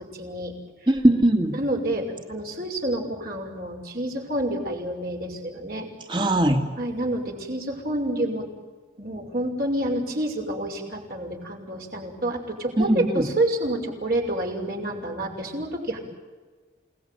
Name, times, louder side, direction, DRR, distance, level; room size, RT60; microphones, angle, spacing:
voice 1, 0.2-0.5 1.5-5.9 6.8-8.5 9.0-16.0, right 1 dB, 55° right, 1 dB, 6.0 m, -28 dB
voice 2, 0.9-1.6 6.1-6.6 12.8-13.2, right 1 dB, 25° right, 5 dB, 2.6 m, -20 dB
29.0 x 19.0 x 9.5 m, 1.4 s
head